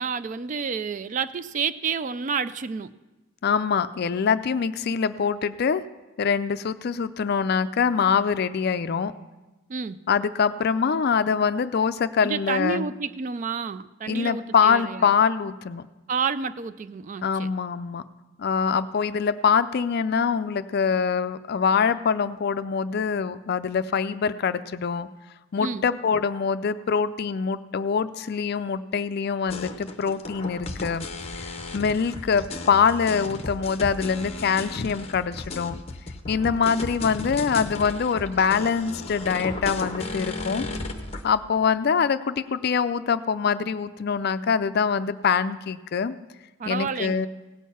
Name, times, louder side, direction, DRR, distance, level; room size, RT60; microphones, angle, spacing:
voice 1, 0.0-2.9 9.7-10.0 12.2-15.1 16.1-17.5 25.6-25.9 46.6-47.3, right 5 dB, 40° right, 14 dB, 0.4 m, -29 dB
voice 2, 3.4-5.8 6.2-9.1 10.1-12.9 14.1-15.9 17.2-18.0 18.4-25.1 25.5-31.1 31.7-35.8 36.3-40.7 41.2-46.1 46.7-47.3, left 6 dB, 50° left, 12 dB, 0.4 m, -24 dB
sound 1, 29.5-41.3, left 2 dB, 30° left, 0.8 m, -35 dB
17.0 x 6.5 x 5.6 m, 1.1 s
head